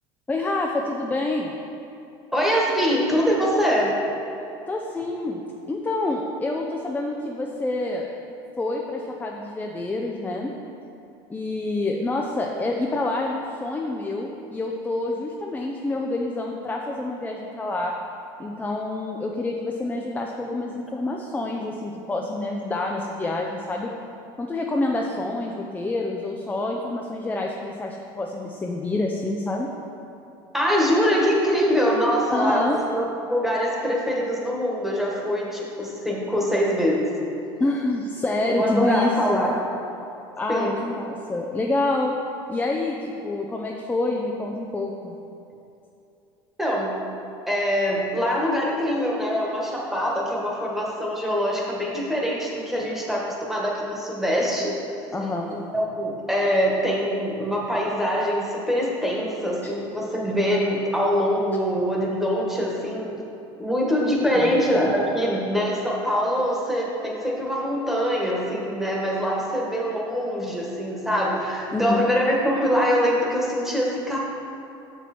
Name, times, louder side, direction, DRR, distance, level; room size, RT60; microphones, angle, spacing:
voice 1, 0.3-1.5 4.7-5.4 5.7-8.1 8.6-10.5 11.3-17.9 18.4-23.9 24.4-29.7 32.3-32.8 37.6-39.4 40.4-42.2 42.5-45.1 55.1-55.5 59.6-59.7 64.3-64.5 71.7-72.1, left 2 dB, 15° left, 0 dB, 0.6 m, -27 dB
voice 2, 2.3-3.9 30.5-37.1 38.5-39.6 40.5-40.8 46.6-47.0 47.5-54.8 55.2-63.2 63.6-74.2, equal, 5° right, -4 dB, 1.5 m, -24 dB
6.7 x 6.3 x 4.3 m, 2.7 s
supercardioid pair, 110°, 12 cm